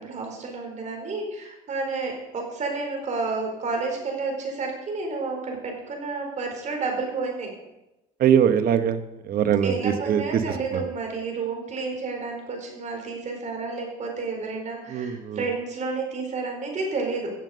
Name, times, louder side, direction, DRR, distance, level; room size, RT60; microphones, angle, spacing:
voice 1, 0.0-7.5 9.6-17.3, right 4 dB, 45° right, 2 dB, 4.6 m, -30 dB
voice 2, 8.2-9.0 9.3-10.2 10.7-10.8 14.9-15.4, right 8 dB, 60° right, 10 dB, 1.2 m, -21 dB
15.5 x 7.5 x 6.6 m, 0.95 s
cardioid pair, 110°, 17 cm